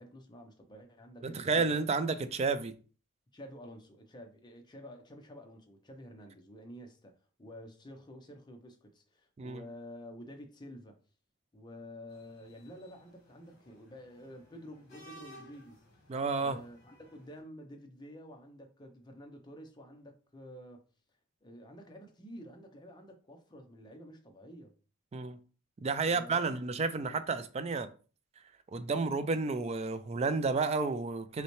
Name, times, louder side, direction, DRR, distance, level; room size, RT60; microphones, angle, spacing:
voice 1, 0.0-1.7 3.3-11.0 11.5-15.8 16.4-20.8 21.4-24.7 26.1-26.6, equal, 20° left, 0.6 m, -50 dB
voice 2, 1.2-2.8 9.4-9.6 16.1-16.6 25.1-25.4 25.8-27.9 28.7-31.4, right 4 dB, 30° right, 0.3 m, -31 dB
sound 1, 12.1-17.4, equal, 50° left, 1.4 m, -57 dB
5.4 x 2.2 x 3.1 m
head